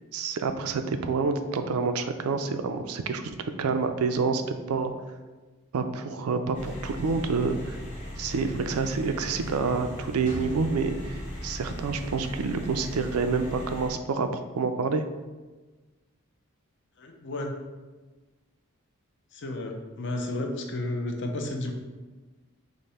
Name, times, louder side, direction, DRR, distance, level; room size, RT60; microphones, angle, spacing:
voice 1, 0.1-4.4 4.7-4.9 5.7-7.8 8.2-15.1, right 4 dB, 85° right, 8 dB, 0.4 m, -28 dB
sound 1, 6.5-13.9, equal, 40° left, 1.3 m, -38 dB
voice 2, 17.0-17.5 19.3-21.7, left 1 dB, 55° left, 3 dB, 0.6 m, -32 dB
5.2 x 2.1 x 4.2 m, 1.2 s
head